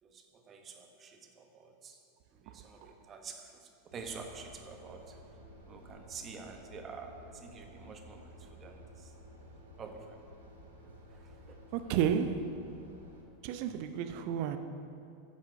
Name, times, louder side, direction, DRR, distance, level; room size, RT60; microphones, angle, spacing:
voice 1, 0.0-2.0 2.3-5.2 5.6-9.1 9.8-10.2 11.1-11.6, right 5 dB, 30° right, 1.3 m, -48 dB
sound 1, 3.9-13.2, equal, 75° right, 1.9 m, -53 dB
voice 2, 11.7-12.6 13.4-14.6, right 8 dB, 50° right, 0.7 m, -32 dB
15.0 x 9.7 x 3.7 m
figure-of-eight pair, 85°, 0 cm